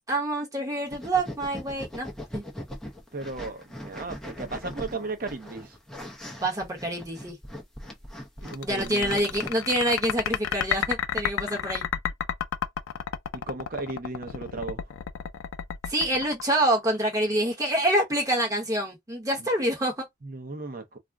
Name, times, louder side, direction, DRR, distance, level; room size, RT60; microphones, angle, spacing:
voice 1, 0.1-2.4 6.4-7.4 8.6-11.8 15.9-20.0, right 1 dB, 15° right, 0.9 m, -26 dB
sound 1, 0.8-9.5, left 1 dB, 5° left, 0.5 m, -40 dB
voice 2, 3.1-5.7 8.4-9.1 13.3-14.8 19.4-19.5 20.2-21.0, right 3 dB, 45° right, 0.6 m, -35 dB
sound 2, 8.5-17.1, left 9 dB, 85° left, 0.3 m, -31 dB
2.5 x 2.1 x 3.4 m
head